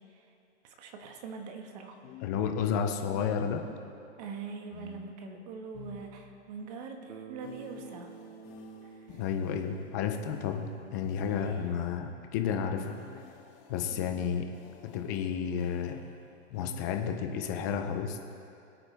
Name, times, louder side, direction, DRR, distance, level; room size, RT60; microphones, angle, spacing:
voice 1, 0.6-2.0 4.2-8.1 8.8-9.2 11.3-11.7, right 5 dB, 35° right, 4 dB, 1.4 m, -43 dB
sound 1, 1.0-1.2 2.0-3.8 4.7-6.6 7.4-11.9 12.8-17.3, left 6 dB, 35° left, 1.8 m, -51 dB
voice 2, 2.2-3.6 9.1-13.0 13.7-14.4 14.8-16.0 16.5-18.2, left 7 dB, 15° left, 5 dB, 0.4 m, -31 dB
Bass guitar, 7.1-11.1, right 6 dB, 90° right, 1.1 m, -50 dB
23.5 x 8.7 x 3.3 m, 2.6 s
hypercardioid pair, 155°, 36 cm